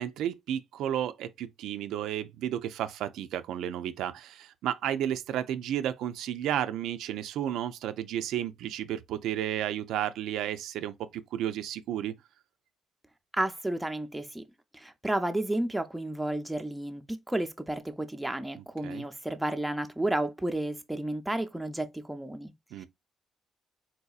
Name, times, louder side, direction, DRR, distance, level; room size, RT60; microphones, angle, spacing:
voice 1, 0.0-12.1 18.8-19.1 22.7-22.9, right 11 dB, 85° right, 0.3 m, -32 dB
voice 2, 13.3-14.4 14.7-22.5, right 1 dB, 5° right, 0.5 m, -32 dB
3.9 x 2.7 x 2.3 m
cardioid pair, 90°, 0 cm